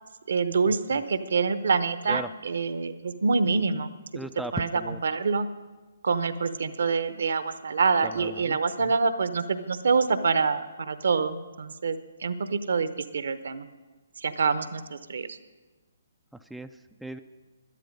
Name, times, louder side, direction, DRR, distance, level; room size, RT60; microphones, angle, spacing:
voice 1, 0.3-3.9 4.5-4.7 5.0-5.5 6.0-13.7 14.2-15.4, right 4 dB, 65° right, 13 dB, 0.8 m, -26 dB
voice 2, 4.1-5.0 8.0-8.9 16.3-17.2, right 1 dB, ahead, 7 dB, 0.3 m, -38 dB
12.0 x 12.0 x 5.3 m, 1.2 s
figure-of-eight pair, 135°, 0 cm